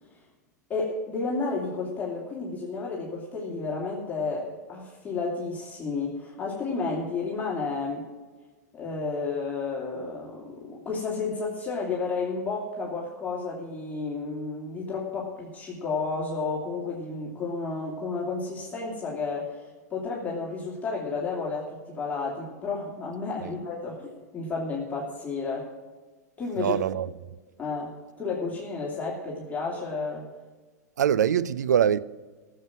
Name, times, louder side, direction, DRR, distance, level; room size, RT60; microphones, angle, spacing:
voice 1, 0.7-8.1 8.7-25.7 26.4-26.8 27.6-30.3, left 4 dB, 15° left, 3.0 m, -32 dB
voice 2, 26.6-27.1 31.0-32.0, right 9 dB, 80° right, 0.5 m, -23 dB
15.5 x 7.7 x 6.0 m
hypercardioid pair, 105°, 9 cm